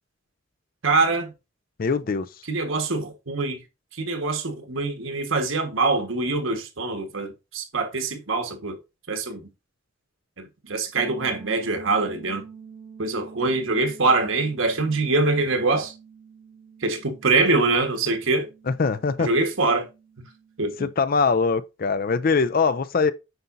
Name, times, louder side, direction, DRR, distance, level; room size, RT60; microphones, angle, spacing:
voice 1, 0.8-1.3 2.4-3.6 3.9-8.8 9.1-9.5 10.4-12.4 13.0-15.9 16.8-18.5 19.2-19.8 20.6-20.9, right 3 dB, 75° right, 1.4 m, -24 dB
voice 2, 1.8-2.3 18.7-19.3 20.8-23.1, left 4 dB, 45° left, 0.4 m, -22 dB
sound 1, 10.9-20.7, right 6 dB, 10° right, 1.0 m, -46 dB
7.9 x 5.7 x 2.6 m
head